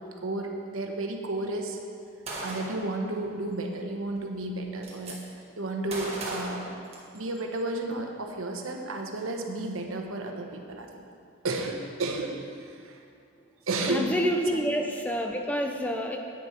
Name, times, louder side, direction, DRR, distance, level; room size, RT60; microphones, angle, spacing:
voice 1, 0.2-1.8 2.4-6.6 7.1-10.9 11.4-13.0 13.7-14.1, right 2 dB, 80° right, 2 dB, 1.0 m, -32 dB
Gunshot gunfire, 2.3-2.9 4.1-4.2 4.4-5.1 5.9-7.4, right 1 dB, 30° right, 1.5 m, -37 dB
voice 2, 13.8-16.2, equal, 5° left, 2 dB, 0.6 m, -28 dB
10.0 x 8.9 x 4.5 m, 2.5 s
head